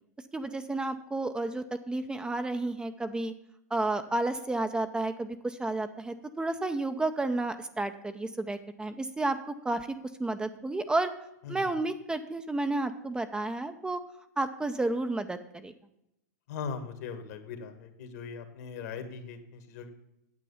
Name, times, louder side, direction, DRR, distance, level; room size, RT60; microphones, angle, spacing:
voice 1, 0.3-3.3 3.7-11.1 11.5-14.0 14.4-15.7, right 2 dB, 10° right, 8 dB, 0.6 m, -31 dB
voice 2, 16.5-19.9, left 6 dB, 65° left, 8 dB, 1.8 m, -40 dB
9.4 x 7.6 x 5.6 m, 0.82 s
hypercardioid pair, 115°, 9 cm